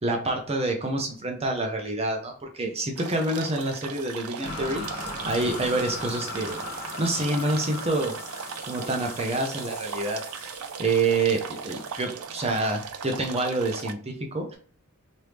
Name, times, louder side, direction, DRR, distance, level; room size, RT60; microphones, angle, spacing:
voice 1, 0.0-6.6 7.0-8.2 8.6-14.5, right 2 dB, 25° right, 2 dB, 0.6 m, -27 dB
sound 1, 3.0-13.9, right 6 dB, 80° right, 0.4 m, -38 dB
sound 2, 4.4-10.5, left 2 dB, 70° left, 1.7 m, -38 dB
sound 3, 4.7-12.1, left 2 dB, 10° left, 0.7 m, -47 dB
3.1 x 2.6 x 3.3 m, 0.43 s
head